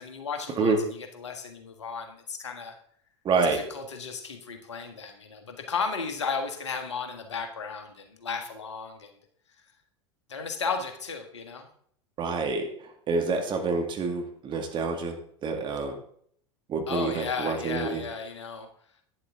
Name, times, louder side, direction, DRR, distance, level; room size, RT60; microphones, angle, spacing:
voice 1, 0.0-2.8 3.4-9.1 10.3-11.7 16.9-18.7, left 5 dB, 75° left, 5 dB, 1.6 m, -34 dB
voice 2, 3.2-3.6 12.2-12.7 13.1-15.2 15.4-16.0 16.7-18.0, right 4 dB, 35° right, 4 dB, 2.1 m, -27 dB
11.5 x 9.6 x 3.7 m, 0.62 s
figure-of-eight pair, 85°, 15 cm